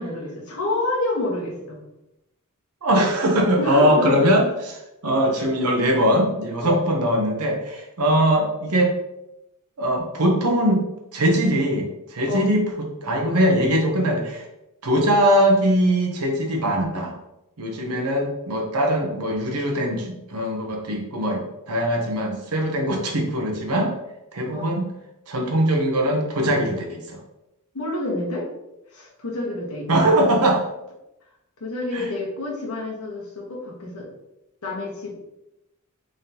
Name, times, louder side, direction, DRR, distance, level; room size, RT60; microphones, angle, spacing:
voice 1, 0.0-1.8 3.6-4.3 5.4-5.5 6.6-6.8 12.3-12.5 24.5-24.7 27.7-28.5 28.9-30.2 31.6-34.1 34.6-35.2, left 2 dB, 75° left, -4 dB, 1.2 m, -28 dB
voice 2, 2.8-8.9 9.8-10.8 11.1-14.4 14.8-17.1 17.6-23.9 24.3-24.8 25.3-27.2 29.9-30.6 31.9-32.1, equal, 75° right, 2 dB, 0.8 m, -21 dB
3.8 x 3.5 x 2.8 m, 0.90 s
head